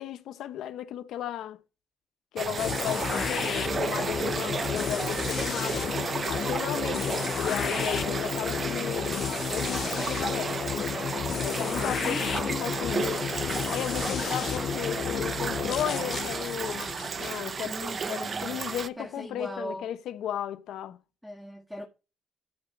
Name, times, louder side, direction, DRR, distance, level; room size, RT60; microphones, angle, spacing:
voice 1, 0.0-1.6 2.3-10.6 11.4-16.9 17.2-21.0, left 11 dB, 80° left, 1.0 m, -35 dB
sound 1, 2.4-18.9, right 5 dB, 45° right, 0.7 m, -33 dB
sound 2, 2.6-18.4, left 8 dB, 60° left, 0.5 m, -32 dB
voice 2, 3.0-3.7 4.3-5.0 8.1-8.7 11.7-12.7 17.6-18.6 19.0-19.9 21.2-21.9, equal, ahead, 1.8 m, -40 dB
13.5 x 5.1 x 4.7 m
cardioid pair, 90°, 0 cm